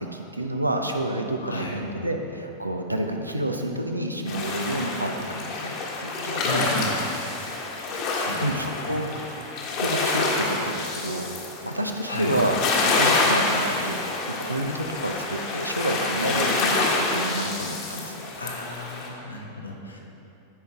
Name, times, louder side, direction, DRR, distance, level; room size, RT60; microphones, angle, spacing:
voice 1, 0.0-6.9 7.9-9.1 9.8-11.3 11.6-12.6 13.0-14.0 14.4-18.3, right 1 dB, 85° right, 4 dB, 0.7 m, -29 dB
voice 2, 1.4-1.8 6.4-7.0 8.1-9.1 12.1-12.4 18.4-20.0, left 1 dB, 80° left, 0 dB, 1.1 m, -34 dB
sound 1, 4.3-19.1, left 3 dB, 45° left, 1.4 m, -27 dB
14.5 x 5.4 x 3.5 m, 2.9 s
figure-of-eight pair, 90°, 0 cm